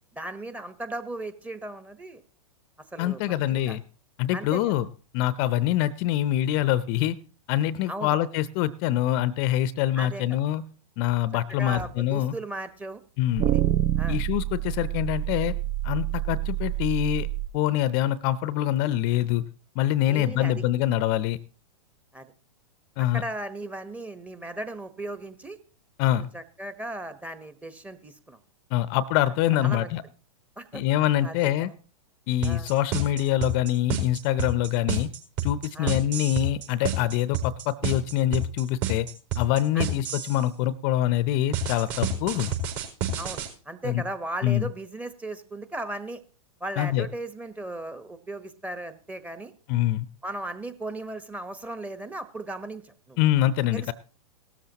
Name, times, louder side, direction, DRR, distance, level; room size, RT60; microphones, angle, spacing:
voice 1, 0.1-2.2 2.9-3.8 4.3-4.6 7.9-8.1 10.0-10.2 11.5-13.0 13.4-13.6 14.0-14.2 20.0-20.5 22.1-22.3 23.0-25.6 26.1-28.4 29.6-29.9 30.6-30.8 31.2-31.5 32.4-32.7 35.7-35.9 39.7-39.8 43.2-46.2 46.6-49.5 50.2-53.2 53.7-53.9, right 2 dB, 10° right, 11 dB, 1.1 m, -36 dB
voice 2, 3.0-3.8 4.2-4.9 5.1-7.2 7.5-10.6 11.0-12.3 13.2-13.5 14.1-15.5 15.8-17.3 17.5-19.4 19.8-21.4 23.0-23.2 26.0-26.3 28.7-30.0 30.7-31.7 32.3-35.1 35.4-39.1 39.4-42.5 43.8-44.0 44.4-44.7 46.8-47.1 49.7-50.1 53.2-53.9, left 13 dB, 40° left, 17 dB, 0.7 m, -25 dB
sound 1, 11.8-11.9 13.4-17.5, right 13 dB, 30° right, 0.6 m, -27 dB
sound 2, 32.4-40.4 41.5-43.5, right 3 dB, 45° right, 4.6 m, -28 dB
17.5 x 13.0 x 2.9 m, 0.39 s
hypercardioid pair, 115°, 19 cm